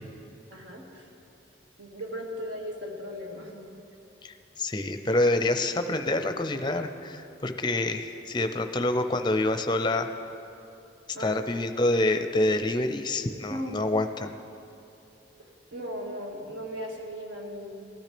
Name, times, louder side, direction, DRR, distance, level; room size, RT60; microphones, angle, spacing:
voice 1, 0.5-1.1 1.8-3.7 11.1-11.5 13.5-13.8 15.4-17.9, equal, 70° right, -2 dB, 2.0 m, -37 dB
voice 2, 4.2-10.1 11.2-14.3, left 2 dB, 25° left, 7 dB, 0.6 m, -27 dB
19.0 x 12.0 x 3.4 m, 2.7 s
head